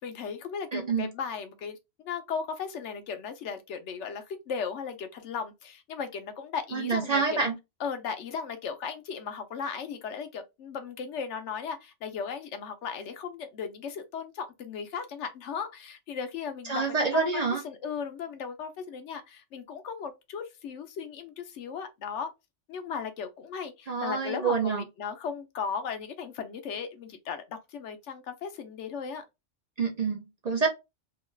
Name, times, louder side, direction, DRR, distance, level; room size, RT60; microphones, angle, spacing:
voice 1, 0.0-1.8 2.0-7.4 7.8-16.8 17.1-22.3 22.7-29.2, left 6 dB, 80° left, 1.0 m, -36 dB
voice 2, 0.7-1.1 6.7-7.6 16.6-17.6 23.9-24.8 29.8-30.7, right 5 dB, 45° right, 0.6 m, -27 dB
3.0 x 2.3 x 3.1 m
omnidirectional pair, 1.2 m